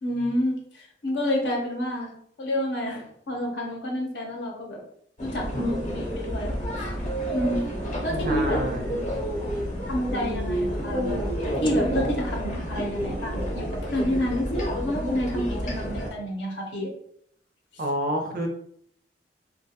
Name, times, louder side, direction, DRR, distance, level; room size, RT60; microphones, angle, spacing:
voice 1, 0.0-2.1 2.4-4.8 5.2-6.9 7.3-7.6 8.0-8.6 9.3-11.2 11.6-16.9, left 1 dB, 80° left, -1 dB, 0.7 m, -29 dB
sound 1, 5.2-16.1, equal, 45° left, 0.7 m, -29 dB
sound 2, 6.5-6.6 7.1-8.8 11.4-11.7, right 6 dB, 30° left, 0.3 m, -37 dB
voice 2, 8.2-9.0 17.8-18.5, right 1 dB, 55° right, 3 dB, 0.5 m, -28 dB
2.4 x 2.2 x 2.7 m, 0.68 s
head